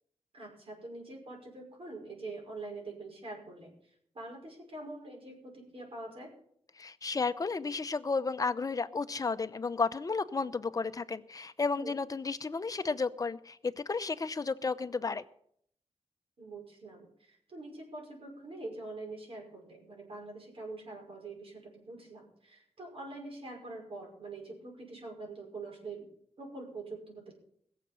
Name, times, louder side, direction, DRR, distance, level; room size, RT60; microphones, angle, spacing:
voice 1, 0.3-6.3 11.8-12.0 16.4-26.1 26.4-27.3, right 2 dB, 60° right, 0 dB, 5.7 m, -45 dB
voice 2, 6.8-15.2, left 4 dB, 35° left, 11 dB, 0.8 m, -33 dB
20.0 x 7.6 x 7.0 m, 0.68 s
wide cardioid pair, 120°, 11 cm